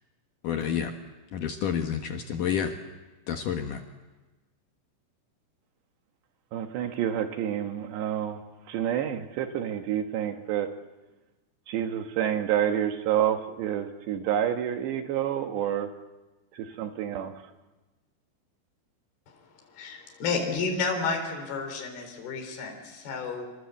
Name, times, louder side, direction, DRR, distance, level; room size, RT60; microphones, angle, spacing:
voice 1, 0.4-0.9 1.3-2.7 3.3-3.8, left 8 dB, 80° left, 4 dB, 1.9 m, -29 dB
voice 2, 6.5-8.4 8.7-10.7 11.7-15.9 16.5-17.3, right 10 dB, 70° right, 6 dB, 3.2 m, -28 dB
voice 3, 19.7-23.5, left 4 dB, 50° left, 3 dB, 5.8 m, -31 dB
28.0 x 25.5 x 8.3 m, 1.2 s
omnidirectional pair, 5.8 m